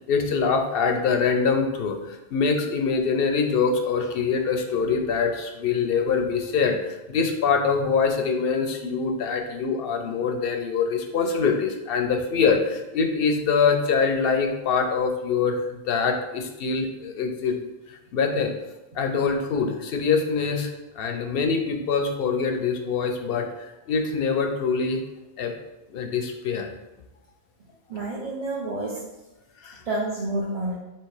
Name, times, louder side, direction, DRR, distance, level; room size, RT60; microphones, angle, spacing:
voice 1, 0.1-18.5 18.9-25.0 25.4-25.5 25.9-26.7 29.6-29.8, left 5 dB, 70° left, 5 dB, 0.7 m, -24 dB
voice 2, 27.9-29.0 29.9-30.7, right 2 dB, 45° right, -5 dB, 0.7 m, -29 dB
3.4 x 2.9 x 4.7 m, 1.0 s
omnidirectional pair, 1.1 m